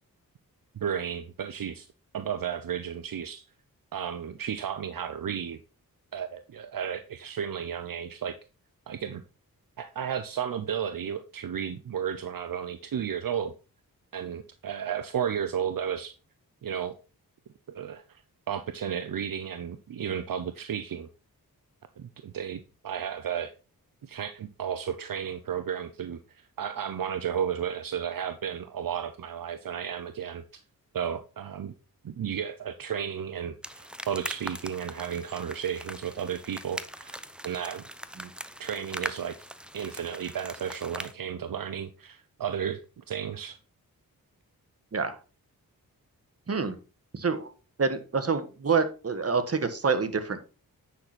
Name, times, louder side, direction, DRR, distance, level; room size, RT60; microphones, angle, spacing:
voice 1, 0.8-1.9 2.1-3.4 3.9-5.6 6.1-8.4 8.9-9.2 9.8-13.5 14.1-16.1 16.6-17.0 17.7-18.2 18.5-21.1 22.0-23.5 24.0-26.2 26.6-30.4 30.9-31.7 32.0-37.2 37.4-37.8 38.6-39.4 39.7-43.6, right 8 dB, 65° right, 10 dB, 0.8 m, -33 dB
sound 1, 33.6-41.1, equal, 5° right, 0.8 m, -41 dB
voice 2, 47.1-47.5 47.8-50.4, right 5 dB, 40° right, 9 dB, 1.5 m, -27 dB
9.5 x 6.1 x 4.2 m, 0.33 s
cardioid pair, 70°, 36 cm